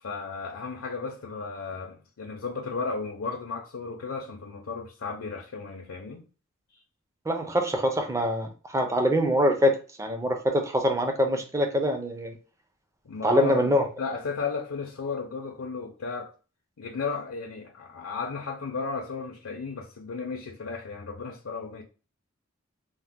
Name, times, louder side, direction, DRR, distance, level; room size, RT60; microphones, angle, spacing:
voice 1, 0.0-6.2 13.0-13.7 14.0-16.3 16.8-21.8, left 4 dB, 70° left, 0.5 m, -34 dB
voice 2, 7.3-12.4 13.2-13.9, equal, 15° right, 0.4 m, -24 dB
2.8 x 2.0 x 3.5 m
head